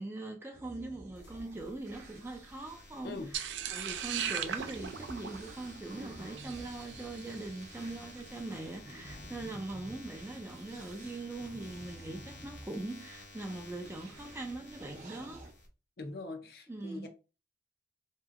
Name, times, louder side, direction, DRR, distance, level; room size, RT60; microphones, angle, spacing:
voice 1, 0.0-15.4 16.7-17.1, right 2 dB, 15° right, 0.4 m, -42 dB
sound 1, 0.5-12.7 13.5-15.5, right 1 dB, 45° right, 0.7 m, -51 dB
sound 2, 1.1-15.7, left 2 dB, 75° left, 1.1 m, -53 dB
sound 3, 3.3-7.6, right 8 dB, 85° right, 0.4 m, -38 dB
voice 2, 16.0-17.1, left 2 dB, 55° left, 0.5 m, -42 dB
2.9 x 2.7 x 2.4 m
head